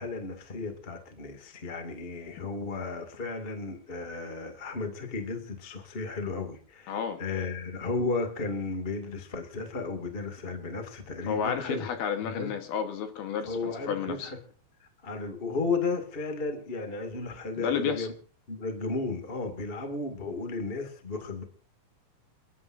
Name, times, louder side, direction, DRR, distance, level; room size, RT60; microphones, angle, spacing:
voice 1, 0.0-11.9 12.2-12.5 13.4-14.4 14.8-18.1 18.5-21.4, left 3 dB, 30° left, 1.1 m, -34 dB
voice 2, 6.9-7.2 11.2-14.3 17.6-18.1, left 7 dB, 65° left, 2.9 m, -31 dB
29.0 x 11.0 x 2.6 m
omnidirectional pair, 5.2 m